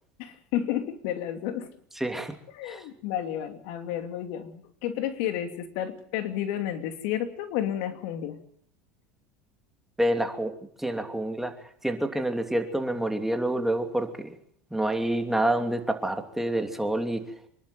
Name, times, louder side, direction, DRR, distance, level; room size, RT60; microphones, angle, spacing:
voice 1, 0.2-1.7 2.5-8.4, left 11 dB, 75° left, 7 dB, 2.7 m, -31 dB
voice 2, 2.0-2.3 2.7-2.8 10.0-10.5 10.8-11.5 11.8-14.3 14.7-17.2, right 1 dB, 5° right, 5 dB, 2.8 m, -27 dB
26.0 x 11.5 x 9.2 m, 0.68 s
supercardioid pair, 105°, 7 cm